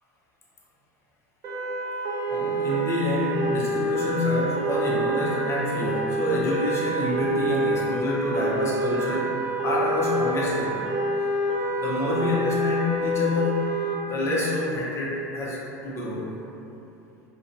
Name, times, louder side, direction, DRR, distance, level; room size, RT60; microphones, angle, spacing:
sound 1, 1.4-13.9, right 1 dB, 40° right, 0.5 m, -27 dB
voice 1, 2.3-9.3 9.6-10.8 11.8-13.8 14.0-16.3, left 2 dB, 30° left, -5 dB, 0.6 m, -27 dB
2.5 x 2.2 x 2.5 m, 2.9 s
hypercardioid pair, 95°, 9 cm